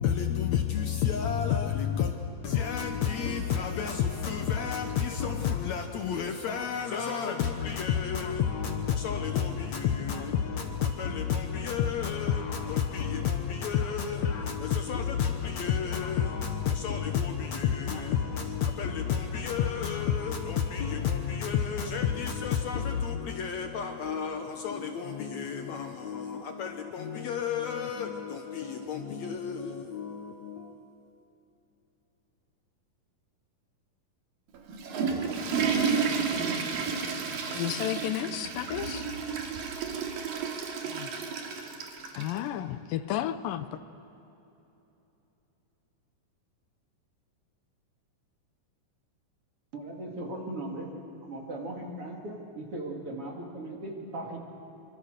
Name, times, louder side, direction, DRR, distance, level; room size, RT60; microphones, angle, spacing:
voice 1, 0.0-2.1 2.4-30.8 40.9-41.1, left 7 dB, 65° left, 2.0 m, -30 dB
Water / Toilet flush, 34.5-42.4, right 5 dB, 80° right, 3.7 m, -31 dB
voice 2, 37.5-39.1 42.1-43.8, left 12 dB, 85° left, 2.5 m, -32 dB
voice 3, 49.7-50.9 51.2-54.4, right 1 dB, 45° right, 3.2 m, -38 dB
25.5 x 25.0 x 6.7 m
omnidirectional pair, 3.9 m